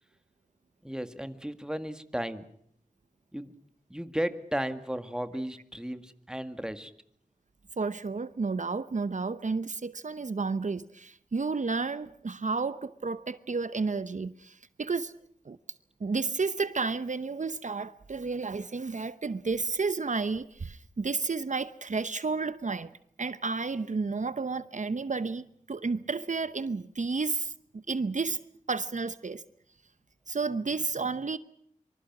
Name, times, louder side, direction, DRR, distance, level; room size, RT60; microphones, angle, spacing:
voice 1, 0.8-2.5 3.3-3.5 3.9-6.9, equal, 5° right, 1.9 m, -34 dB
voice 2, 7.8-15.1 15.4-15.6 16.0-22.9 23.2-28.4 28.7-29.4 30.3-31.4, right 4 dB, 60° right, 0.9 m, -31 dB
25.0 x 25.0 x 6.1 m
wide cardioid pair, 65°, 14 cm